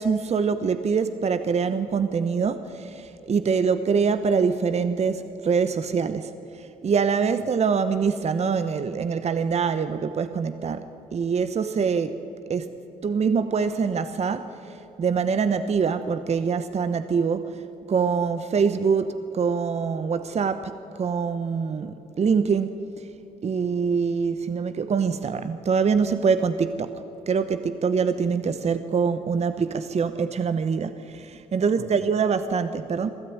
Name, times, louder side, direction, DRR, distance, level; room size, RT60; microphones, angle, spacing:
voice 1, 0.0-10.8 11.1-12.2 12.5-12.7 13.0-17.6 17.9-23.1 23.4-33.1, right 5 dB, 45° right, 11 dB, 1.0 m, -24 dB
23.5 x 13.0 x 9.4 m, 3.0 s
hypercardioid pair, 55°, 15 cm